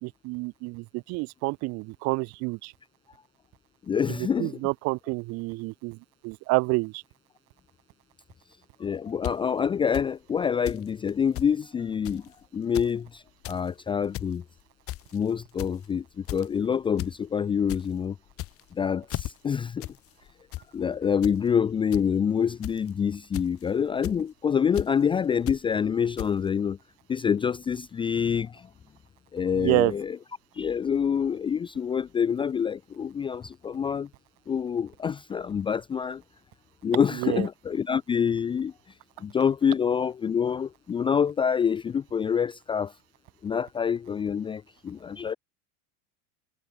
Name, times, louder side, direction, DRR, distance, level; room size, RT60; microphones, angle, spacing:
voice 1, 0.0-2.7 4.1-6.0 6.2-7.0 29.5-29.9 37.1-37.5, right 26 dB, 35° right, 0.8 m, -28 dB
voice 2, 3.9-4.6 8.8-12.2 12.5-14.4 15.1-16.0 16.3-18.2 18.7-19.9 20.7-26.8 27.1-28.7 29.3-30.2 30.5-34.1 34.5-36.2 36.8-38.7 39.2-42.9 43.4-45.4, left 7 dB, 10° left, 0.7 m, -26 dB
sound 1, 9.2-9.3 9.9-10.1 10.7-10.8 11.1-11.5 12.0-12.3 12.6-12.9 13.3-13.6 14.0-14.3 14.9-15.2 15.6-15.9 16.3-16.5 17.0-17.1 17.5-17.8 18.3-18.7 19.1-19.3 19.8-20.0 20.3-20.6 21.2-21.4 21.9-22.0 22.6-22.9 23.3-23.6 24.0-24.2 24.7-24.9 25.5-25.6 26.2-26.3, left 16 dB, 30° left, 2.6 m, -34 dB
supercardioid pair, 170°, 43 cm